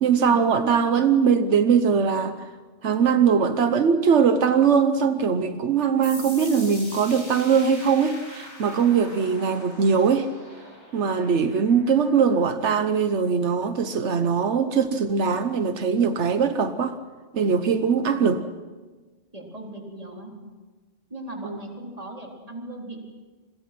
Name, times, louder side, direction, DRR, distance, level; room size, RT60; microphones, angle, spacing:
voice 1, 0.0-2.5 2.8-10.3 10.9-17.0 17.3-18.4 21.4-21.6, right 6 dB, 85° right, 9 dB, 1.3 m, -21 dB
sound 1, 6.0-13.4, left 1 dB, 90° left, 7.2 m, -43 dB
voice 2, 19.3-20.3 21.1-23.1, right 1 dB, 30° right, 0 dB, 4.1 m, -38 dB
29.5 x 22.0 x 6.0 m, 1.3 s
omnidirectional pair, 1.1 m